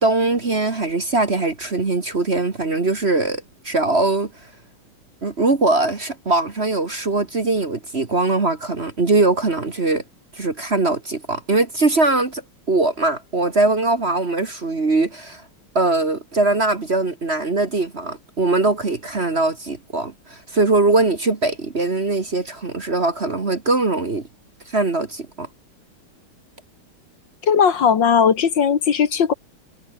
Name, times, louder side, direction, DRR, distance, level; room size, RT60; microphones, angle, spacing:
voice 1, 0.0-4.3 5.2-10.0 10.3-12.4 12.7-15.4 15.8-24.2 24.7-25.5, right 2 dB, 30° right, 1.8 m, -21 dB
voice 2, 27.4-29.3, left 7 dB, 60° left, 2.2 m, -17 dB
omnidirectional pair, 2.3 m